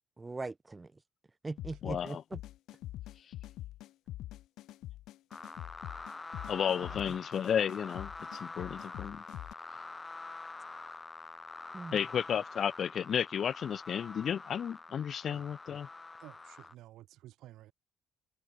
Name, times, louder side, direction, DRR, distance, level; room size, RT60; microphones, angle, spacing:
voice 1, 0.2-0.9 1.4-2.4 6.8-6.9 11.7-12.0, right 3 dB, 25° right, 0.9 m, -40 dB
sound 1, 1.6-9.5, left 14 dB, 85° left, 3.5 m, -45 dB
voice 2, 1.8-2.2 6.5-9.2 11.9-15.9, left 8 dB, 60° left, 0.7 m, -33 dB
sound 2, 5.3-16.7, left 3 dB, 25° left, 4.6 m, -46 dB
voice 3, 16.2-17.7, right 14 dB, 85° right, 1.6 m, -53 dB
cardioid pair, 90°, 0 cm